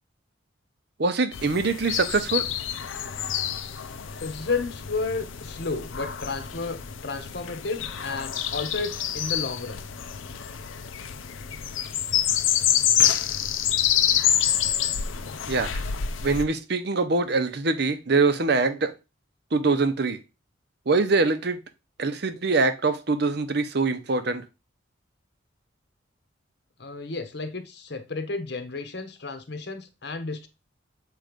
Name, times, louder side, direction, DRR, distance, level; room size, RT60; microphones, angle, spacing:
voice 1, 1.0-2.5 15.5-15.8 16.2-18.9 19.5-20.2 20.9-21.6 22.0-24.4, right 3 dB, 55° right, 0.7 m, -23 dB
sound 1, 1.3-16.4, left 10 dB, 85° left, 0.6 m, -27 dB
voice 2, 4.2-9.8 26.8-30.5, left 3 dB, 55° left, 0.9 m, -32 dB
7.6 x 3.1 x 5.1 m
head